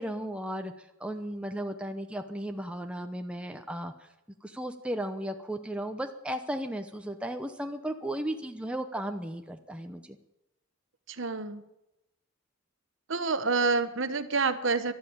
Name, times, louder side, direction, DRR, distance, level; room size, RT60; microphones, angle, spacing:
voice 1, 0.0-3.9 4.4-10.2, right 1 dB, 5° right, 5 dB, 0.8 m, -35 dB
voice 2, 11.1-11.6 13.1-14.9, right 4 dB, 60° right, 10 dB, 1.0 m, -28 dB
13.0 x 12.5 x 8.7 m, 0.92 s
head